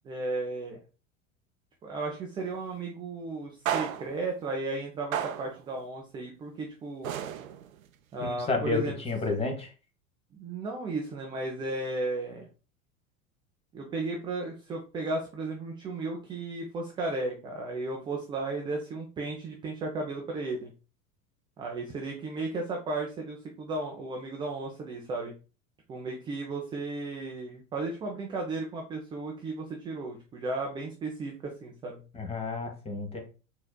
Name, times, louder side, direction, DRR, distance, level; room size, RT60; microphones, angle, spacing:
voice 1, 0.0-0.8 1.8-7.2 8.1-8.9 10.3-12.5 13.7-20.7 21.6-25.3 25.9-32.0, right 2 dB, 10° right, 1 dB, 0.4 m, -34 dB
sound 1, 2.4-2.6 3.6-4.3 5.1-5.7 7.0-7.8, right 10 dB, 70° right, 0.5 m, -33 dB
voice 2, 8.2-9.7 32.1-33.2, left 3 dB, 15° left, 2 dB, 0.9 m, -31 dB
4.1 x 3.9 x 2.2 m, 0.34 s
figure-of-eight pair, 80°, 43 cm